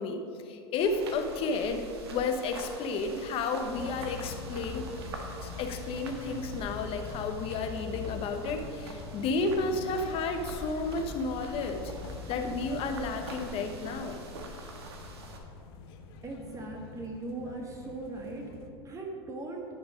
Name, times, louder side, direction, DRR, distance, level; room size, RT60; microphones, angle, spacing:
voice 1, 0.0-4.9 5.4-11.9 12.3-14.2, left 3 dB, 45° left, 6 dB, 1.1 m, -32 dB
sound 1, 0.8-15.4, right 2 dB, 90° right, 1.3 m, -45 dB
sound 2, 3.7-18.7, left 5 dB, 70° left, 0.9 m, -44 dB
voice 2, 16.2-19.7, right 2 dB, 25° right, 0 dB, 1.8 m, -39 dB
10.5 x 6.0 x 5.1 m, 2.5 s
hypercardioid pair, 105°, 13 cm